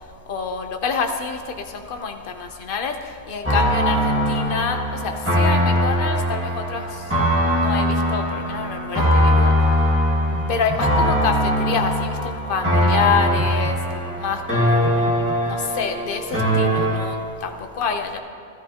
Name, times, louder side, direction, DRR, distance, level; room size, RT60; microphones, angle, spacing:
voice 1, 0.3-7.0 7.6-9.5 10.5-13.8 14.2-15.0 15.4-18.2, left 5 dB, 55° left, 5 dB, 0.9 m, -27 dB
sound 1, 3.4-17.0, equal, 10° right, 1.9 m, -21 dB
sound 2, 10.3-11.2 13.1-13.7 14.8-15.4 16.3-16.9, right 3 dB, 75° right, 1.8 m, -33 dB
14.0 x 13.5 x 2.9 m, 2.3 s
omnidirectional pair, 1.1 m